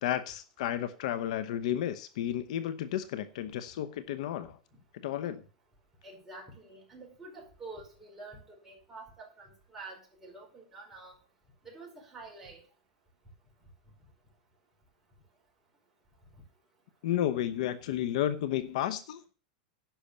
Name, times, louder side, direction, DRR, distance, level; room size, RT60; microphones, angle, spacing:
voice 1, 0.0-4.6 4.9-5.4 17.0-19.2, left 11 dB, 65° left, 0.9 m, -32 dB
voice 2, 6.0-11.1 11.6-12.6, right 3 dB, 10° right, 4.9 m, -48 dB
10.5 x 5.9 x 6.8 m
supercardioid pair, 150°, 4 cm